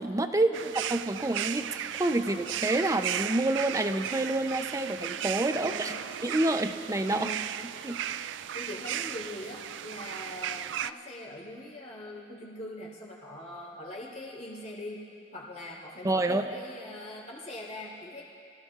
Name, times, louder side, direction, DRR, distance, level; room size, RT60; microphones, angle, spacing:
voice 1, 0.0-0.5 0.9-5.9 6.2-7.3 7.8-8.0 16.0-16.5, right 2 dB, 20° right, 7 dB, 0.6 m, -28 dB
sound 1, 0.5-10.9, right 10 dB, 85° right, 0.3 m, -36 dB
voice 2, 5.5-5.9 7.1-7.4 8.5-15.0 15.3-18.3, left 1 dB, 40° left, -6 dB, 3.8 m, -42 dB
27.5 x 16.0 x 2.4 m, 2.5 s
head